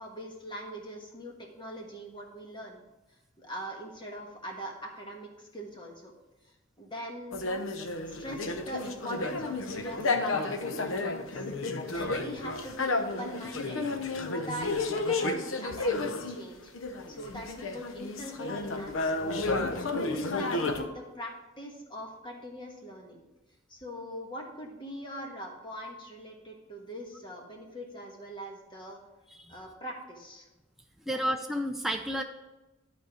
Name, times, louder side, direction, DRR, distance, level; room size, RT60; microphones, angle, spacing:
voice 1, 0.0-2.8 3.4-6.1 6.8-7.4 8.1-11.5 11.9-16.7 17.1-19.2 19.8-23.2 23.7-29.0 29.5-30.5 31.1-31.2, equal, 25° left, 1 dB, 1.3 m, -42 dB
sound 1, 7.3-16.4 16.7-20.8, left 3 dB, 90° left, 0.7 m, -32 dB
voice 2, 31.1-32.2, equal, ahead, 3 dB, 0.4 m, -31 dB
11.0 x 4.4 x 4.9 m, 1.0 s
head